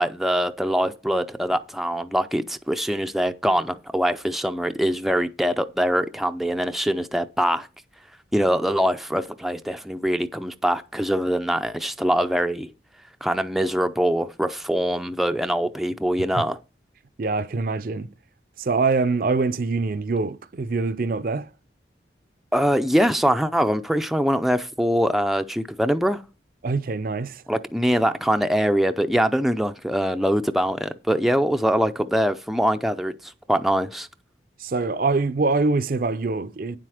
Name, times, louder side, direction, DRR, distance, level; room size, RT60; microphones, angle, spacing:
voice 1, 0.0-7.7 8.3-12.7 13.2-16.6 22.5-26.2 27.5-34.1, equal, ahead, 0.4 m, -23 dB
voice 2, 17.2-18.1 18.6-21.5 26.6-27.4 34.6-36.8, right 3 dB, 50° right, 0.5 m, -24 dB
9.5 x 7.6 x 4.9 m
head